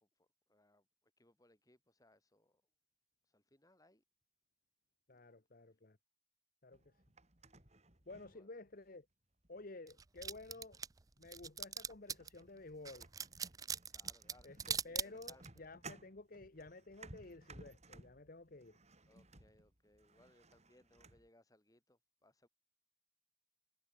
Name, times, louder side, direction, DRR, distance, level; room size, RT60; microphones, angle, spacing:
voice 1, 0.0-2.6 3.3-4.0 8.3-8.5 13.9-15.6 19.1-22.5, left 1 dB, 20° left, 3.5 m, -69 dB
voice 2, 5.1-6.0 6.6-6.9 8.1-9.1 9.5-10.8 11.2-13.1 14.4-18.8, left 2 dB, 45° left, 1.1 m, -53 dB
sound 1, 6.7-8.9 9.4-9.9 11.0-11.1 11.6-11.8 12.1-21.3, right 3 dB, 35° right, 4.2 m, -59 dB
sound 2, 9.9-12.4 12.9-15.6, right 7 dB, 20° right, 0.4 m, -41 dB
head